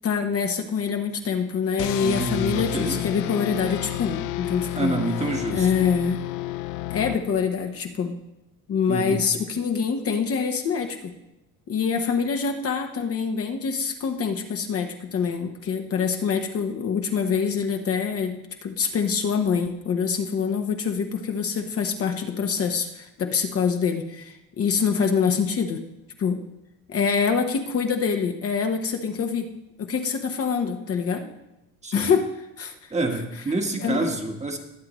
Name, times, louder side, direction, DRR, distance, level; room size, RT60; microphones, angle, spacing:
voice 1, 0.0-5.0 5.5-6.2 6.9-8.2 8.7-11.1 11.7-25.8 26.2-26.4 26.9-29.5 29.8-31.3 31.9-32.3 32.6-32.9 33.8-34.2, left 6 dB, 40° left, 4 dB, 1.0 m, -25 dB
sound 1, 1.8-7.7, left 15 dB, 80° left, 0.5 m, -31 dB
voice 2, 2.0-3.0 4.7-5.9 8.9-9.2 31.8-32.1 32.9-34.6, right 2 dB, 20° right, 3 dB, 1.3 m, -27 dB
20.0 x 7.5 x 3.1 m, 0.88 s
cardioid pair, 105°, 36 cm